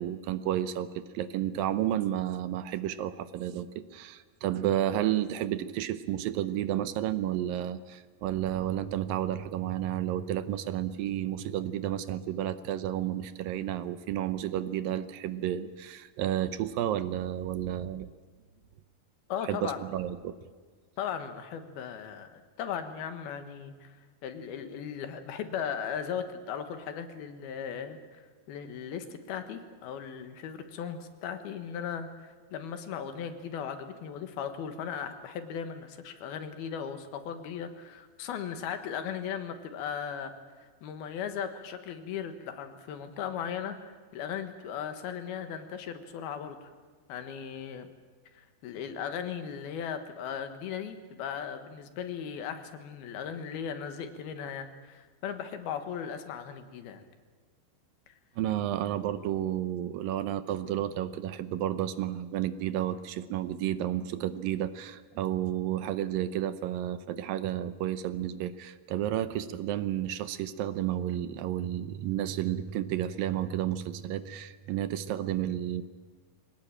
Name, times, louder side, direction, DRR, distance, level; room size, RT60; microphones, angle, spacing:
voice 1, 0.0-18.1 19.5-20.4 58.4-75.8, right 11 dB, 75° right, 13 dB, 2.4 m, -31 dB
voice 2, 19.3-19.8 21.0-24.0 24.2-40.3 40.8-46.6 47.1-47.9 48.3-57.0 58.1-58.2, left 8 dB, 80° left, 8 dB, 3.4 m, -37 dB
23.0 x 19.0 x 8.9 m, 1.4 s
omnidirectional pair, 4.4 m